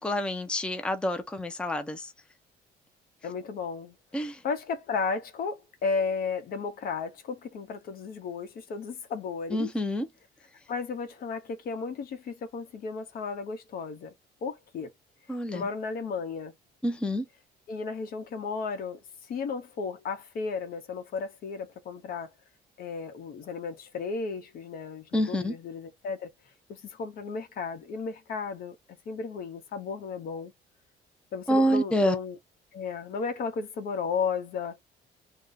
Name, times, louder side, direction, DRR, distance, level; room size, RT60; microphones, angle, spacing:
voice 1, 0.0-2.1 4.1-4.4 9.5-10.1 15.3-15.6 16.8-17.3 25.1-25.6 31.5-32.2, equal, 5° left, 0.5 m, -27 dB
voice 2, 3.2-4.0 4.4-9.7 10.7-14.1 14.4-14.9 15.5-16.5 17.7-22.3 22.8-26.3 26.7-28.8 29.1-30.5 31.3-32.4 32.7-34.8, left 5 dB, 60° left, 0.9 m, -34 dB
2.7 x 2.3 x 3.8 m
cardioid pair, 110°, 17 cm